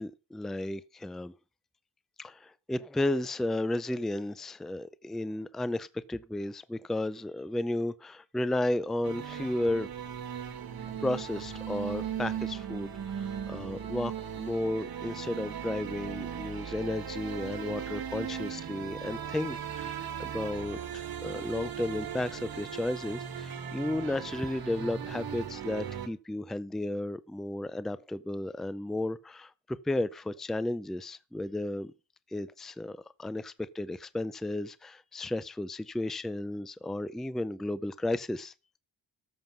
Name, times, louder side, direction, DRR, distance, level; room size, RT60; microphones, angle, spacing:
voice 1, 0.0-1.3 2.2-9.9 11.0-29.5 29.8-31.9 32.3-38.5, left 1 dB, ahead, 0.4 m, -33 dB
sound 1, 9.0-26.1, right 8 dB, 55° right, 1.5 m, -38 dB
13.5 x 5.4 x 6.0 m
wide cardioid pair, 115°, 42 cm